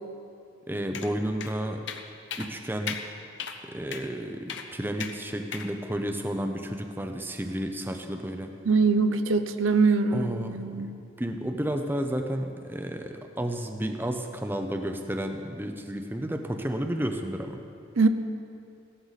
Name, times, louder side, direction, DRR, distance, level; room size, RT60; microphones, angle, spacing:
voice 1, 0.7-1.8 2.4-3.0 3.6-8.5 10.1-10.9 11.2-17.6, right 1 dB, 10° right, 5 dB, 0.6 m, -32 dB
Old keyboard, 0.9-1.1 1.4-1.5 1.9-2.0 2.3-2.5 2.9-3.0 3.4-3.6 3.9-4.1 4.5-4.7 5.0-5.1 5.5-5.7, left 7 dB, 60° left, 0.8 m, -35 dB
voice 2, 8.6-10.9 18.0-18.1, right 4 dB, 75° right, 9 dB, 0.7 m, -23 dB
16.5 x 13.0 x 4.1 m, 2.5 s
head